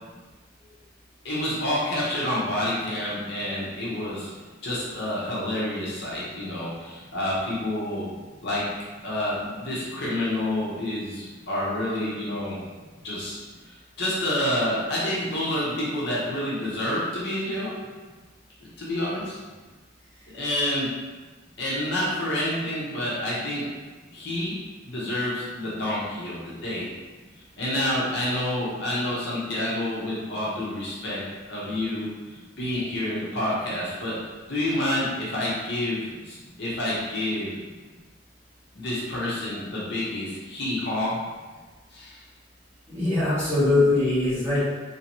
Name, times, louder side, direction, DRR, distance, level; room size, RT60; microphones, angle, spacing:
voice 1, 1.2-4.3 4.6-8.1 8.4-8.7 9.0-12.6 13.0-17.7 18.8-19.4 20.3-21.0 21.6-23.7 24.1-24.6 24.9-26.9 27.6-34.2 34.5-37.6 38.7-41.2 41.9-42.2, left 1 dB, 55° left, -7 dB, 0.9 m, -28 dB
voice 2, 42.9-44.6, left 2 dB, 10° right, -14 dB, 1.5 m, -22 dB
3.3 x 2.8 x 3.0 m, 1.3 s
head